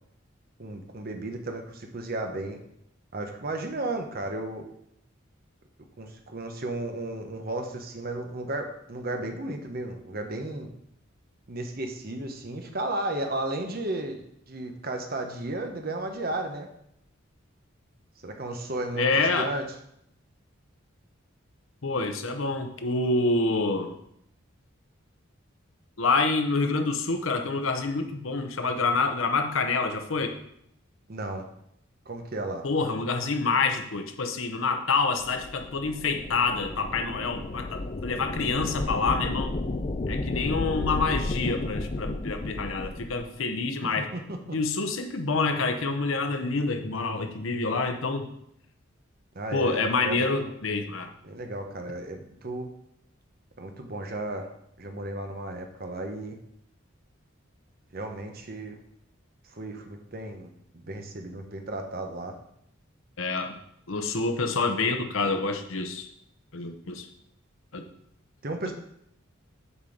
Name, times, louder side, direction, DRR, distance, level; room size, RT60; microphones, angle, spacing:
voice 1, 0.6-2.6 3.1-4.7 6.0-10.7 11.5-16.7 18.2-19.7 31.1-31.4 32.1-32.7 44.0-44.6 49.3-50.4 51.2-52.7 53.6-54.5 54.8-56.4 57.9-58.8 59.5-60.5 60.7-62.4 68.4-68.7, right 2 dB, 45° right, 4 dB, 0.9 m, -34 dB
voice 2, 19.0-19.5 21.8-23.9 26.0-30.4 32.6-39.6 40.1-44.1 44.5-48.3 49.5-51.1 63.2-63.6 63.9-66.1 66.5-67.1 67.7-67.8, left 3 dB, 75° left, 6 dB, 0.8 m, -27 dB
sound 1, 35.2-43.2, left 2 dB, 30° left, 0.4 m, -33 dB
7.0 x 4.4 x 5.0 m, 0.74 s
head